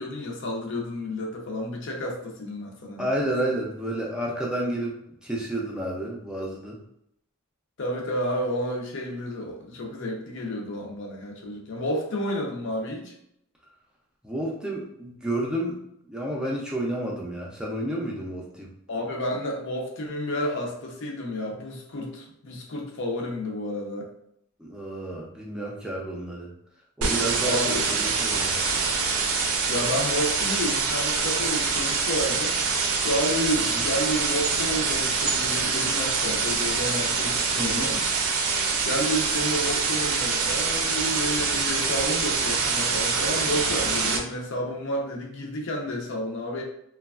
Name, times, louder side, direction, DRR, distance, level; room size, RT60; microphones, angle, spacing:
voice 1, 0.0-3.2 7.8-13.1 18.9-24.1 27.4-27.9 29.7-32.6 33.0-38.0 38.8-46.6, equal, 60° left, 0 dB, 0.6 m, -30 dB
voice 2, 3.0-5.0 5.2-6.8 14.2-15.8 16.1-18.7 24.6-26.5 27.0-28.6 33.7-33.9 37.6-37.9, right 1 dB, 5° right, -3 dB, 0.4 m, -30 dB
sound 1, 27.0-44.2, right 4 dB, 85° right, 0.5 m, -25 dB
3.1 x 2.2 x 2.3 m, 0.75 s
head